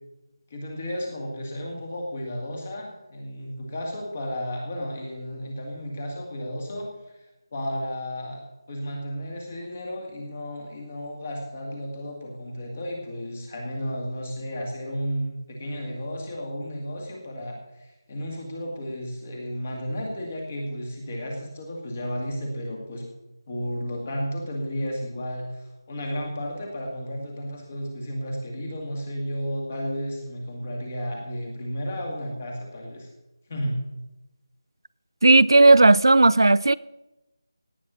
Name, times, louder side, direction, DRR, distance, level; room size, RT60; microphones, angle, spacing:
voice 1, 0.5-7.3 7.5-23.1 23.5-33.1 33.5-33.8, equal, 20° left, 2.0 m, -33 dB
voice 2, 35.2-36.7, right 2 dB, 75° right, 0.4 m, -15 dB
17.5 x 8.6 x 6.2 m
figure-of-eight pair, 180°, 2 cm